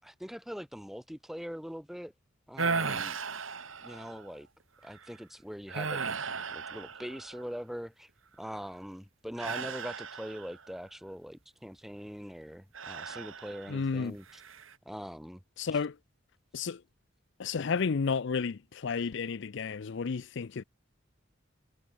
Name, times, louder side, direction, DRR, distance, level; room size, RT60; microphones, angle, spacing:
voice 1, 0.0-2.1 2.5-3.2 3.8-4.5 4.8-6.0 6.5-8.1 8.4-14.4 14.8-15.4, equal, ahead, 6.2 m, -42 dB
sound 1, 2.6-4.3 4.8-5.1 5.7-7.6 9.4-10.7 12.7-13.9 14.3-14.7, right 4 dB, 80° right, 2.7 m, -36 dB
voice 2, 13.7-14.2 15.6-16.0 16.5-16.8 17.4-20.6, left 5 dB, 60° left, 0.5 m, -32 dB
head